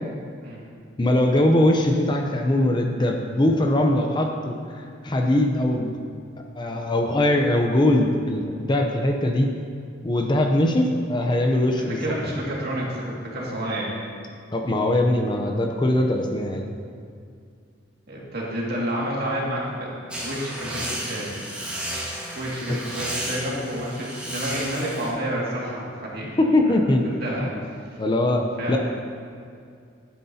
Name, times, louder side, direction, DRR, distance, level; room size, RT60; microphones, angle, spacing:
voice 1, 1.0-6.0 6.6-9.5 10.0-12.0 14.5-16.7 26.4-27.0 27.4-27.5 28.0-28.8, left 1 dB, 25° left, 2 dB, 0.6 m, -21 dB
voice 2, 11.8-14.0 18.1-21.3 22.3-27.5 28.6-28.8, right 1 dB, 55° right, -5 dB, 2.1 m, -30 dB
sound 1, 20.1-25.1, right 1 dB, 5° right, 1.8 m, -33 dB
11.5 x 9.8 x 2.8 m, 2.3 s
head